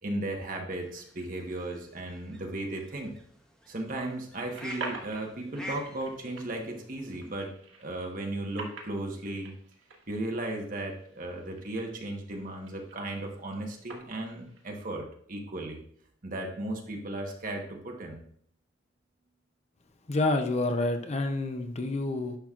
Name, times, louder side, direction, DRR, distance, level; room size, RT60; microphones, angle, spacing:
voice 1, 0.0-3.1 3.7-7.5 7.8-9.5 10.1-15.8 16.2-18.2, right 1 dB, 45° right, 2 dB, 1.1 m, -36 dB
sound 1, 0.8-7.4, equal, 5° left, 0.8 m, -49 dB
sound 2, 4.3-14.9, right 3 dB, 85° right, 1.6 m, -47 dB
voice 2, 20.1-22.4, left 2 dB, 35° left, 6 dB, 0.5 m, -28 dB
10.0 x 6.0 x 2.4 m, 0.64 s
head